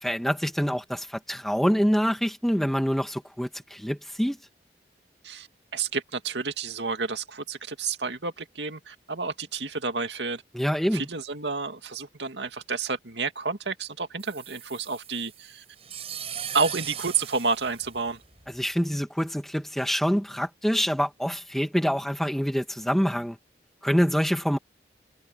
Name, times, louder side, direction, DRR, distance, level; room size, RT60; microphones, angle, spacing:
voice 1, 0.0-4.4 10.5-11.0 18.5-23.4 23.8-24.6, equal, ahead, 2.2 m, -26 dB
voice 2, 5.7-10.4 10.9-15.6 16.5-18.2, right 4 dB, 85° right, 2.3 m, -30 dB
sound 1, 14.2-18.5, right 9 dB, 35° right, 7.8 m, -39 dB
head